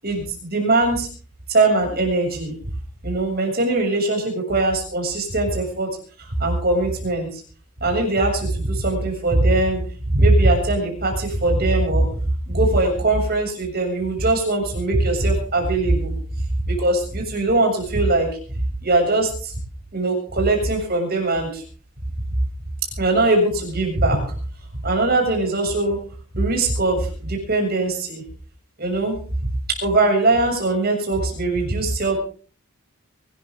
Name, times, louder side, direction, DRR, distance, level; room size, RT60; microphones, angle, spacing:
voice 1, 0.0-1.1 1.5-2.5 3.0-5.9 6.2-7.4 7.8-9.8 10.1-12.2 12.5-16.2 16.6-18.3 18.8-19.5 19.9-21.6 23.0-24.2 24.8-26.0 26.3-28.2 28.8-29.2 29.7-32.2, right 2 dB, 45° right, 1 dB, 7.4 m, -21 dB
24.0 x 13.5 x 3.8 m, 0.41 s
head